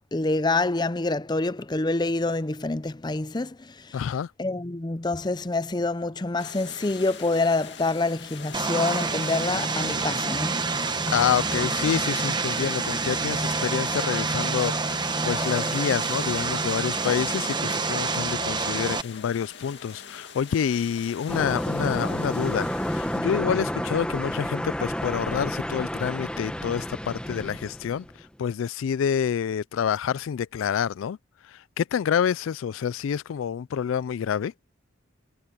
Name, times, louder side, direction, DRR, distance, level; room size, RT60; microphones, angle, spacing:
voice 1, 0.1-4.0 4.4-10.6, left 2 dB, 20° left, 0.5 m, -26 dB
voice 2, 3.9-4.3 11.1-31.2 31.4-34.5, left 8 dB, 80° left, 0.3 m, -28 dB
sound 1, 6.4-23.2, left 6 dB, 60° left, 2.4 m, -43 dB
Vehicle, 8.5-19.0, right 4 dB, 20° right, 1.0 m, -27 dB
sound 2, 21.3-28.2, equal, 5° left, 1.2 m, -30 dB
head